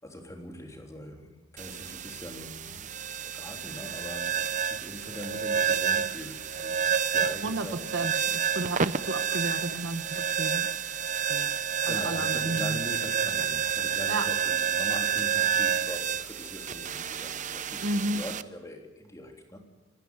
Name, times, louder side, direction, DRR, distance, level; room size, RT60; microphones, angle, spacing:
voice 1, 0.0-2.9 3.3-7.8 11.8-19.6, left 1 dB, 15° left, 2 dB, 3.5 m, -42 dB
sound 1, 1.6-18.4, right 7 dB, 40° right, 0.7 m, -29 dB
voice 2, 7.4-10.7 11.3-12.8 14.1-14.3 17.8-18.2, right 2 dB, 60° right, 8 dB, 1.5 m, -33 dB
27.0 x 12.5 x 9.8 m, 1.2 s
head